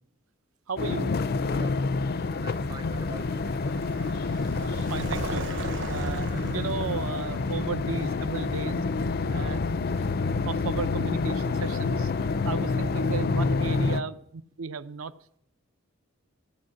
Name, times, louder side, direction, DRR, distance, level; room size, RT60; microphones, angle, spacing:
voice 1, 0.7-1.2 4.5-8.8 9.3-9.6 9.9-10.1 10.4-15.1, right 5 dB, 75° right, 12 dB, 0.6 m, -35 dB
sound 1, 0.8-14.0, left 4 dB, 45° left, 0.4 m, -28 dB
voice 2, 1.4-3.5, right 2 dB, 20° right, 11 dB, 0.5 m, -44 dB
Vehicle, 1.6-10.4, right 3 dB, 60° right, 1.0 m, -41 dB
15.5 x 8.4 x 7.5 m, 0.70 s
head